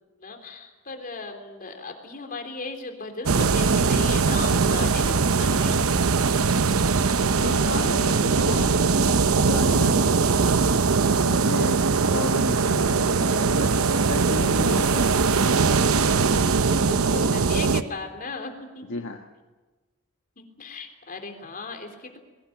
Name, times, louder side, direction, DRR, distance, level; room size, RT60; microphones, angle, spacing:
voice 1, 0.2-5.9 16.3-18.9 20.4-22.2, left 3 dB, 40° left, 5 dB, 3.5 m, -37 dB
sound 1, 3.3-17.8, right 4 dB, 80° right, 0.8 m, -21 dB
voice 2, 7.3-10.7 11.2-15.1 18.9-19.2, left 3 dB, 60° left, 3 dB, 1.4 m, -34 dB
21.5 x 18.5 x 9.6 m, 1.2 s
head